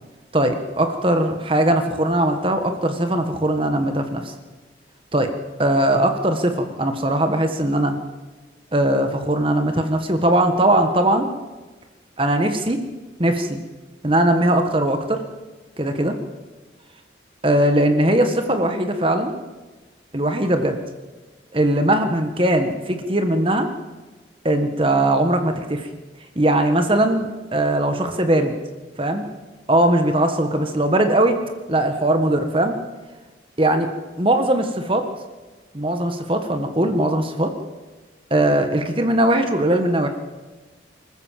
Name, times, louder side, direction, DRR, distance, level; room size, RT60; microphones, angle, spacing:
voice 1, 0.3-4.3 5.1-5.3 5.6-8.0 8.7-11.3 12.2-12.8 13.2-13.6 14.0-15.2 15.8-16.2 17.4-19.3 20.1-20.8 21.5-23.7 24.4-25.9 26.3-28.5 29.0-29.2 29.7-31.3 31.7-32.8 33.6-33.9 34.2-35.1 35.7-37.5 38.3-40.1, right 1 dB, 30° right, 6 dB, 1.5 m, -20 dB
25.5 x 14.5 x 7.5 m, 1.2 s
head